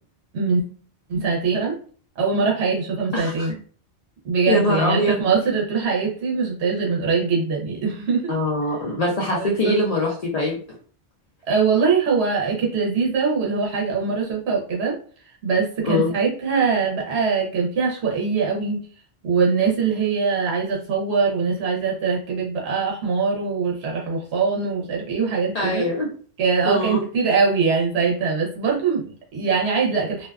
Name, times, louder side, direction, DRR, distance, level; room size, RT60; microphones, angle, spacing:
voice 1, 1.1-1.8 2.2-3.5 4.2-8.3 9.3-9.8 11.5-15.0 15.4-18.8 19.2-25.9 26.4-30.3, right 5 dB, 80° right, -2 dB, 0.9 m, -22 dB
voice 2, 3.1-3.5 4.5-5.2 8.3-10.6 15.8-16.1 25.5-26.1 26.6-27.0, left 1 dB, 50° left, -3 dB, 0.5 m, -22 dB
2.5 x 2.2 x 2.2 m, 0.43 s
omnidirectional pair, 1.1 m